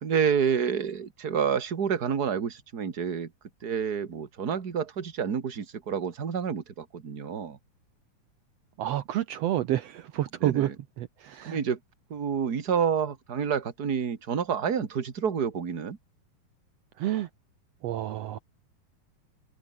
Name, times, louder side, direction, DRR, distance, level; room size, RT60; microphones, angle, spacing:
voice 1, 0.0-3.3 3.6-7.6 10.4-10.7 11.5-11.8 12.1-16.0, right 7 dB, 35° right, 2.0 m, -28 dB
voice 2, 8.8-10.7 11.0-11.6 17.0-17.3 17.8-18.4, right 13 dB, 75° right, 1.5 m, -29 dB
omnidirectional pair, 4.2 m